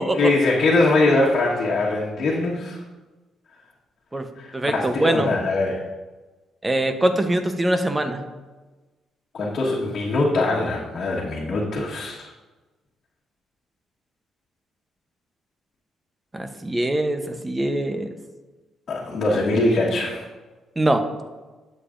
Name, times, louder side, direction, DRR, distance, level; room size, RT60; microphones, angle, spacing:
voice 1, 0.0-2.8 4.4-5.8 9.3-12.3 18.9-20.3, left 2 dB, 55° left, -5 dB, 1.4 m, -22 dB
voice 2, 4.5-5.3 6.6-8.3 16.3-18.1 20.8-21.1, right 1 dB, 15° right, 7 dB, 0.8 m, -23 dB
12.0 x 7.0 x 2.6 m, 1.2 s
cardioid pair, 90°, 0 cm